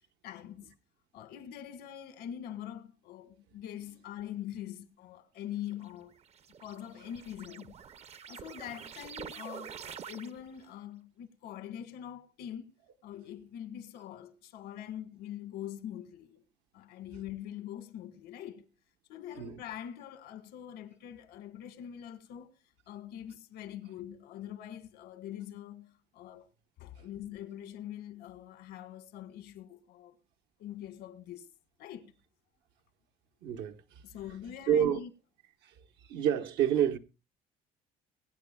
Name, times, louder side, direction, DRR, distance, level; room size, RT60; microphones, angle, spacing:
voice 1, 0.2-0.7 1.1-6.2 6.6-7.7 8.3-12.7 13.0-16.4 16.7-18.7 19.1-22.5 22.9-26.5 26.8-30.2 30.6-31.5 31.8-32.1 34.0-35.1, left 10 dB, 85° left, 1.7 m, -43 dB
sound 1, 5.7-10.6, right 7 dB, 40° right, 0.5 m, -47 dB
voice 2, 33.4-33.8 34.7-35.0 36.1-37.0, right 9 dB, 85° right, 1.1 m, -27 dB
23.0 x 9.0 x 2.2 m
cardioid pair, 110°, 17 cm